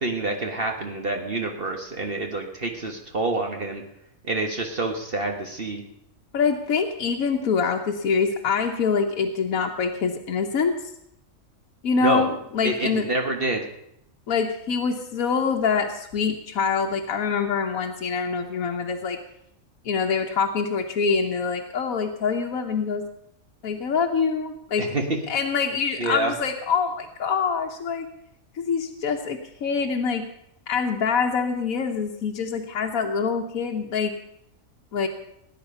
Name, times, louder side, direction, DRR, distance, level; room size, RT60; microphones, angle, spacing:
voice 1, 0.0-3.8 4.2-5.8 12.0-12.3 12.6-13.6 24.8-25.0 26.0-26.3, right 2 dB, 45° right, 3 dB, 1.6 m, -27 dB
voice 2, 6.3-10.8 11.8-13.1 14.3-19.2 19.8-23.1 23.6-24.9 25.3-28.1 28.5-30.3 30.7-34.1 34.9-35.1, left 5 dB, 85° left, 2 dB, 1.4 m, -25 dB
19.0 x 9.7 x 5.5 m, 0.77 s
omnidirectional pair, 1.4 m